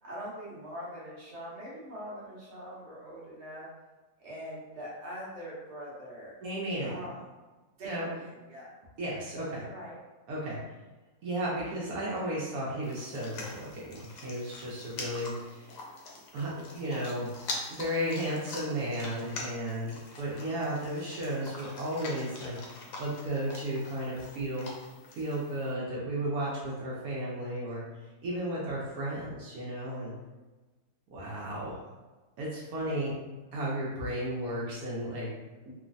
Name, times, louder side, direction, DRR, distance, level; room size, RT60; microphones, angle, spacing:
voice 1, 0.0-3.7 4.2-6.4 6.8-7.2 7.8-8.7 9.6-10.0 10.4-10.7, equal, 50° right, -6 dB, 1.0 m, -43 dB
voice 2, 6.4-6.9 7.8-8.1 9.0-9.7 10.3-10.6 11.2-15.7 16.3-17.3 17.7-22.6 23.0-24.7 25.1-27.8 28.2-30.1 31.1-31.8 32.4-33.2 33.5-35.3, right 1 dB, 75° right, -6 dB, 1.1 m, -34 dB
sound 1, 12.8-25.7, left 2 dB, 85° left, 1.2 m, -44 dB
3.1 x 2.1 x 2.5 m, 1.2 s
omnidirectional pair, 1.7 m